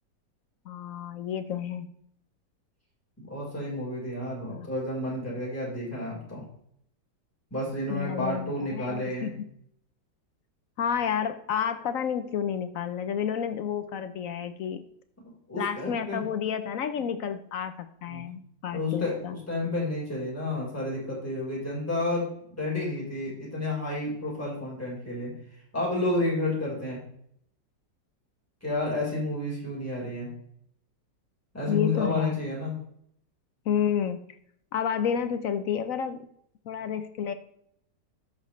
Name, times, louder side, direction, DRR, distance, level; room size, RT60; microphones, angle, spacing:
voice 1, 0.7-1.9 4.5-4.7 7.9-9.4 10.8-14.8 15.6-19.4 31.7-32.4 33.7-34.2 34.7-36.3 36.7-37.3, left 8 dB, 65° left, 10 dB, 0.8 m, -30 dB
voice 2, 3.2-6.4 7.5-9.3 15.5-16.2 18.1-18.3 18.7-25.3 25.7-27.0 28.6-30.3 31.5-32.8, left 2 dB, 10° left, -6 dB, 4.2 m, -31 dB
12.5 x 6.4 x 3.1 m, 0.69 s
omnidirectional pair, 1.9 m